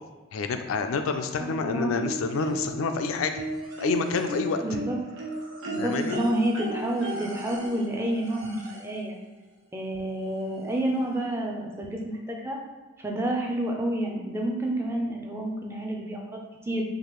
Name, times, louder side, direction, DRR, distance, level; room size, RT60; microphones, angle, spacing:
voice 1, 0.3-3.3 3.8-4.6 5.8-6.2, left 4 dB, 90° left, 7 dB, 0.4 m, -28 dB
voice 2, 1.4-1.9 4.6-5.0 5.6-9.2 9.7-12.6 13.0-16.8, right 1 dB, 10° right, 0 dB, 0.4 m, -29 dB
sound 1, 1.9-2.9 3.3-9.0 10.2-10.3 10.7-10.8, right 1 dB, 80° right, 0.7 m, -36 dB
4.7 x 2.5 x 3.0 m, 1.2 s
head